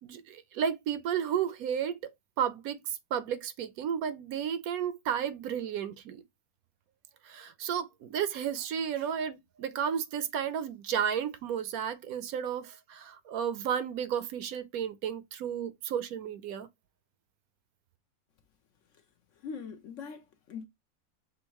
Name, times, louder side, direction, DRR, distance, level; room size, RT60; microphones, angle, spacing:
voice 1, 0.0-2.0 2.4-6.2 7.2-16.7, right 8 dB, 75° right, 1.0 m, -33 dB
voice 2, 19.4-20.7, left 6 dB, 65° left, 0.8 m, -41 dB
6.3 x 2.6 x 2.9 m
omnidirectional pair, 1.6 m